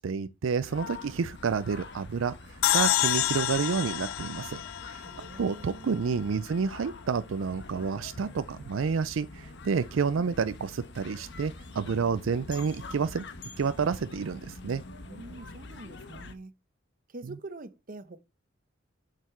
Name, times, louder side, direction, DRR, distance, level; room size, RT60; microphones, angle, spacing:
voice 1, 0.0-5.1 5.4-13.2 13.6-14.8, right 5 dB, 75° right, 0.4 m, -29 dB
sound 1, 0.6-16.3, left 3 dB, 60° left, 1.2 m, -46 dB
sound 2, 2.6-5.9, left 13 dB, 85° left, 0.4 m, -28 dB
voice 2, 5.0-6.0 15.1-16.5 17.1-18.2, right 2 dB, 45° right, 0.9 m, -45 dB
8.2 x 6.6 x 4.4 m
head